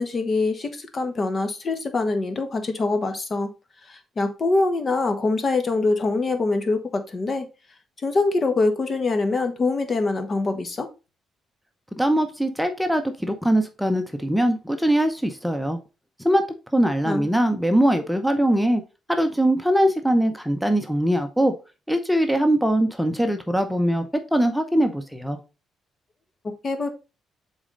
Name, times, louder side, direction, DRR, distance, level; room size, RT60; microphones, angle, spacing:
voice 1, 0.0-3.5 3.8-7.5 8.0-10.9 17.0-17.3 26.6-26.9, left 3 dB, 40° left, 7 dB, 1.4 m, -24 dB
voice 2, 11.9-15.8 16.2-16.4 16.7-18.8 19.1-21.5 21.9-25.4, right 1 dB, ahead, 6 dB, 0.9 m, -21 dB
7.0 x 4.1 x 4.0 m, 0.30 s
cardioid pair, 90°, 0 cm